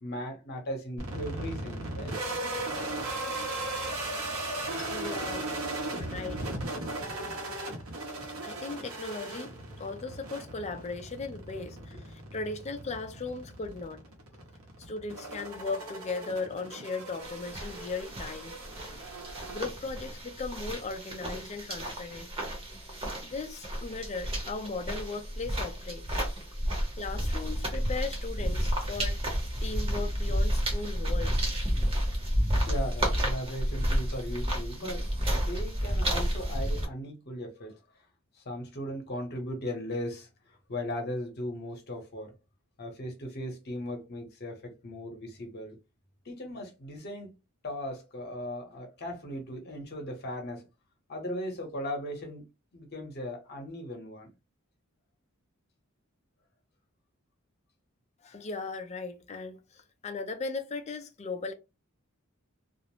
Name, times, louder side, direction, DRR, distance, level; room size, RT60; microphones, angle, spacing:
voice 1, 0.0-2.2 4.5-5.6 22.7-22.8 32.6-37.8 38.3-42.3 42.8-45.8 46.2-47.4 47.6-50.7 51.1-52.5 52.7-54.3, equal, 50° left, 0.9 m, -38 dB
sound 1, 1.0-20.2, right 2 dB, 80° right, 0.9 m, -37 dB
voice 2, 4.9-5.5 6.0-6.5 8.4-14.0 14.8-18.6 19.5-22.3 23.2-26.1 27.0-29.2 29.6-31.5 58.2-61.5, left 4 dB, 30° left, 0.4 m, -37 dB
sound 2, 17.2-36.8, equal, 25° right, 0.8 m, -31 dB
2.4 x 2.0 x 3.0 m
head